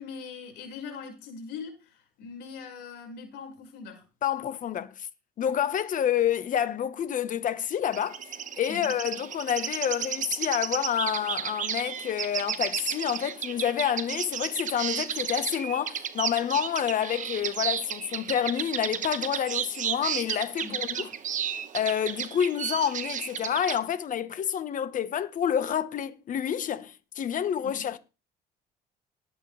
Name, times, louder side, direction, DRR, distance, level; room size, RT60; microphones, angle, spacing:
voice 1, 0.0-4.0 8.7-9.0 20.6-21.1 27.6-27.8, left 5 dB, 85° left, 5.8 m, -42 dB
voice 2, 4.2-5.1 5.4-8.2 8.6-21.1 21.7-28.0, left 9 dB, 50° left, 1.4 m, -28 dB
sound 1, 7.8-23.8, right 8 dB, 50° right, 1.2 m, -33 dB
18.5 x 8.7 x 3.5 m
cardioid pair, 110°, 17 cm